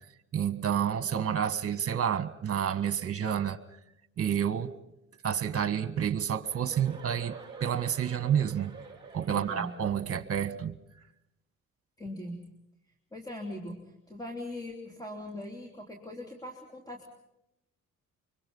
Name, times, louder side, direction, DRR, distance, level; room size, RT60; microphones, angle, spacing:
voice 1, 0.3-3.6 4.2-4.7 5.2-7.3 7.6-8.7 9.1-10.8, right 9 dB, 50° right, 11 dB, 1.6 m, -29 dB
Chuckle chortle, 6.4-10.2, right 5 dB, 10° right, 7.1 m, -47 dB
voice 2, 9.3-9.7 12.0-12.4 13.1-17.1, left 1 dB, 10° left, 1 dB, 3.1 m, -40 dB
25.0 x 24.0 x 5.5 m, 0.84 s
cardioid pair, 90°, 30 cm